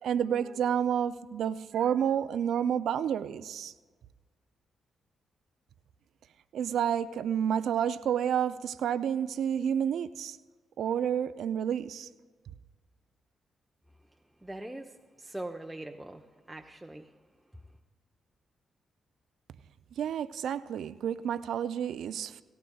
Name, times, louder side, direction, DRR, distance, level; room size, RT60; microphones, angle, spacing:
voice 1, 0.0-3.7 6.5-10.4 10.8-12.1 19.9-22.4, right 9 dB, 70° right, 0.4 m, -30 dB
voice 2, 14.4-17.1, right 1 dB, 10° right, 0.8 m, -42 dB
18.0 x 17.0 x 2.3 m
hypercardioid pair, 45°, 0 cm